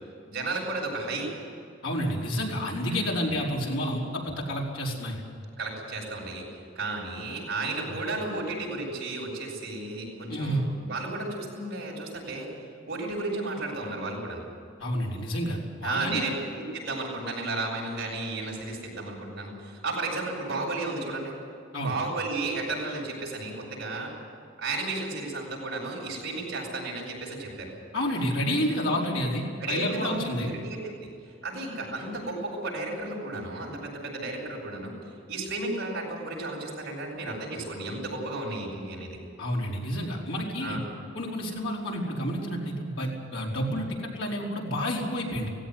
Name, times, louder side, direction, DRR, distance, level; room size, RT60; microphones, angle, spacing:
voice 1, 0.3-1.3 2.9-3.3 5.6-6.4 6.8-12.5 12.9-14.5 15.8-16.3 16.6-21.3 21.8-24.1 24.6-27.7 29.6-31.1 31.4-34.9 35.3-39.2 40.6-40.8, right 2 dB, 55° right, -2 dB, 7.6 m, -33 dB
voice 2, 1.8-5.2 10.3-10.6 14.8-16.2 21.7-21.9 27.9-30.5 39.4-40.8 41.1-45.5, equal, 90° left, -3 dB, 5.0 m, -29 dB
18.5 x 16.5 x 9.8 m, 2.4 s
head